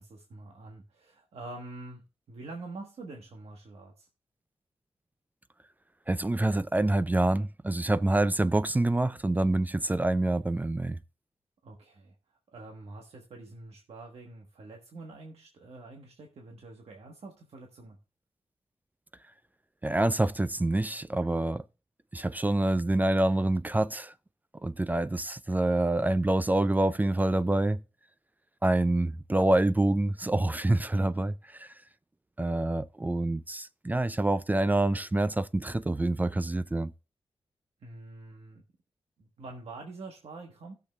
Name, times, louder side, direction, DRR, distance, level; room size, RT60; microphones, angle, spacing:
voice 1, 0.0-2.0 2.3-4.1 11.6-12.1 12.5-18.0 37.8-38.6 39.2-40.7, right 2 dB, 75° right, 1.3 m, -46 dB
voice 2, 6.1-11.0 19.8-21.6 22.1-24.1 24.6-27.8 28.6-31.3 31.6-31.7 32.4-36.9, right 1 dB, 15° right, 0.4 m, -26 dB
17.0 x 6.6 x 2.3 m
cardioid pair, 70°, 10 cm